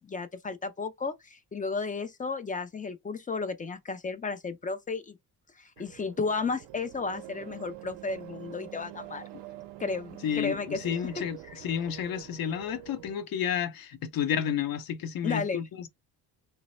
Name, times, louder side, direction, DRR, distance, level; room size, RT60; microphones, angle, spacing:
voice 1, 0.0-5.2 5.6-9.2 9.8-10.8 11.2-11.5 15.2-15.6, left 4 dB, 20° left, 0.4 m, -33 dB
sound 1, 5.8-13.1, right 15 dB, 85° right, 0.6 m, -46 dB
voice 2, 10.2-15.9, left 9 dB, 55° left, 0.7 m, -31 dB
3.0 x 2.0 x 4.1 m
cardioid pair, 130°, 41 cm